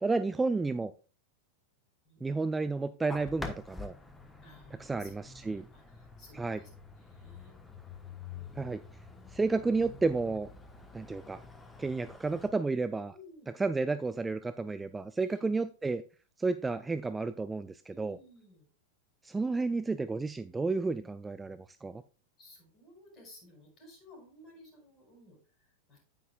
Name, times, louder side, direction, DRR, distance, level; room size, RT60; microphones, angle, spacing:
voice 1, 0.0-0.9 2.2-3.9 4.8-5.7 6.3-6.6 8.6-8.8 9.3-10.5 10.9-11.4 11.8-13.1 13.6-16.0 16.4-18.2 19.2-22.0, right 3 dB, 10° right, 13 dB, 0.3 m, -31 dB
sound 1, 3.1-12.5, left 4 dB, 10° left, 1.2 m, -47 dB
voice 2, 4.4-6.7 6.9-7.5 8.2-8.9 13.1-13.5 15.2-15.5 17.9-18.7 22.4-26.0, left 1 dB, 30° left, 1 dB, 5.0 m, -56 dB
9.2 x 9.2 x 2.4 m, 0.35 s
figure-of-eight pair, 90°, 0 cm